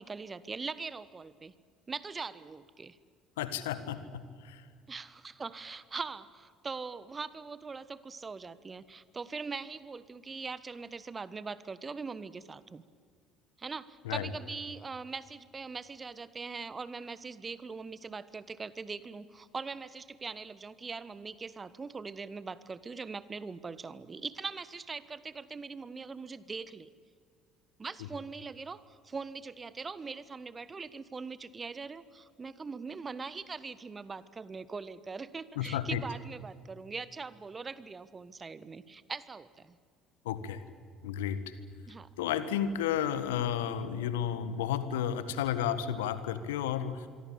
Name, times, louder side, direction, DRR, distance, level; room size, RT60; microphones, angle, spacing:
voice 1, 0.0-1.5 1.9-3.0 4.9-12.8 13.6-26.9 27.8-39.8 41.9-42.1, right 4 dB, 30° right, 16 dB, 1.3 m, -41 dB
voice 2, 3.4-4.6 14.0-14.3 35.5-36.0 40.2-40.6 41.0-41.4 42.2-47.1, left 9 dB, 75° left, 13 dB, 1.6 m, -32 dB
26.5 x 23.0 x 8.7 m, 2.1 s
figure-of-eight pair, 55°, 0 cm